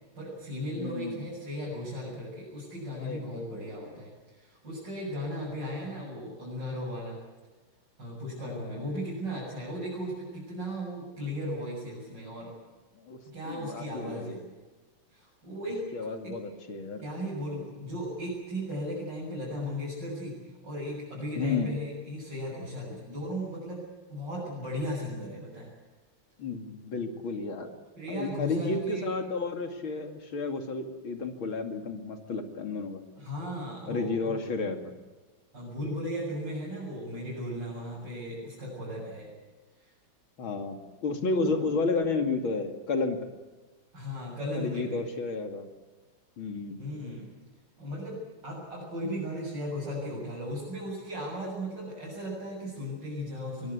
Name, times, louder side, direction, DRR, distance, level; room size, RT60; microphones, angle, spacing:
voice 1, 0.1-7.2 8.0-12.5 13.3-14.4 15.1-16.4 17.0-23.8 24.1-25.7 28.0-29.1 33.2-34.4 35.5-39.3 39.8-39.9 43.9-45.0 46.8-47.3 47.8-53.7, equal, 55° right, -6 dB, 8.1 m, -36 dB
voice 2, 0.8-1.3 2.9-3.8 8.4-8.9 12.9-13.2 13.4-14.4 15.9-17.0 21.4-21.7 26.4-27.7 28.1-33.0 33.9-34.8 40.4-43.2 44.5-45.7 46.4-46.8, left 3 dB, 75° left, 5 dB, 3.2 m, -32 dB
23.5 x 22.0 x 8.4 m, 1.2 s
omnidirectional pair, 2.2 m